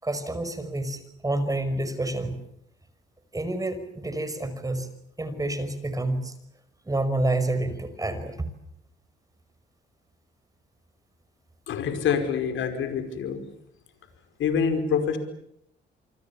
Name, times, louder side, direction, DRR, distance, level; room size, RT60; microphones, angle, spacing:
voice 1, 0.0-2.4 3.3-4.9 5.2-6.4 6.9-8.4, right 2 dB, 15° right, 11 dB, 5.6 m, -28 dB
voice 2, 11.7-13.4 14.4-15.2, left 7 dB, 75° left, 7 dB, 5.1 m, -26 dB
27.5 x 25.5 x 7.2 m, 0.73 s
cardioid pair, 90°, 20 cm